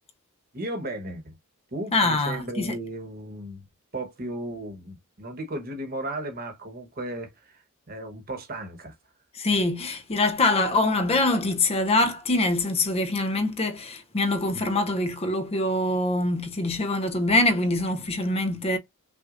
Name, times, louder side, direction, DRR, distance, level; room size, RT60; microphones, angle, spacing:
voice 1, 0.5-1.4 1.7-3.6 3.9-9.0, right 1 dB, 45° right, 1.2 m, -35 dB
voice 2, 1.9-2.8 9.3-18.8, left 2 dB, 30° left, 0.6 m, -24 dB
5.9 x 2.3 x 2.5 m
head